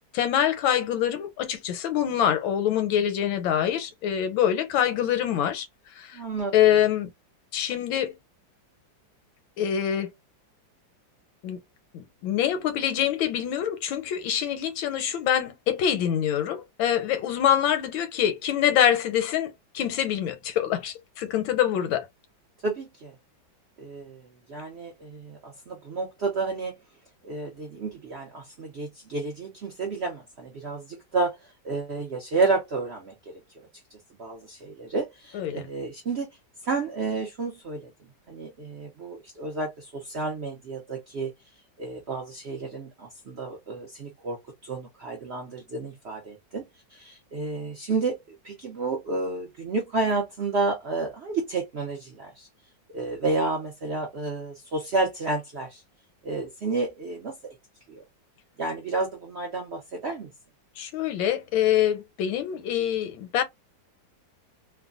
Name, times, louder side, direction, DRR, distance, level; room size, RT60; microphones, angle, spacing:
voice 1, 0.1-5.7 6.0-6.2 6.5-7.1 7.5-8.1 9.6-10.1 11.4-11.6 11.9-22.1 35.3-35.6 60.8-63.4, left 10 dB, 85° left, 1.4 m, -25 dB
voice 2, 6.1-6.5 22.6-23.1 23.8-26.8 27.2-31.4 31.6-33.1 34.2-36.3 36.6-37.9 38.3-41.3 41.8-46.6 46.9-52.5 52.9-55.8 56.2-57.3 57.9-58.0 58.6-60.3, right 3 dB, 80° right, 0.5 m, -31 dB
3.1 x 2.2 x 2.3 m
omnidirectional pair, 2.1 m